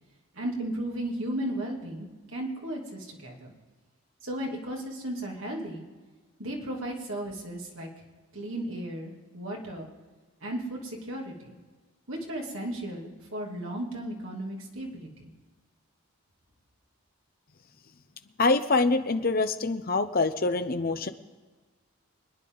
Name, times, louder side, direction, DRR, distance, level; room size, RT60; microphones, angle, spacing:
voice 1, 0.3-3.5 4.2-5.8 6.4-7.9 8.3-9.9 10.4-11.5 12.1-15.3, right 1 dB, 65° right, -1 dB, 2.8 m, -35 dB
voice 2, 18.4-21.1, left 3 dB, 40° left, 9 dB, 0.7 m, -25 dB
25.0 x 9.7 x 3.9 m, 1.4 s
head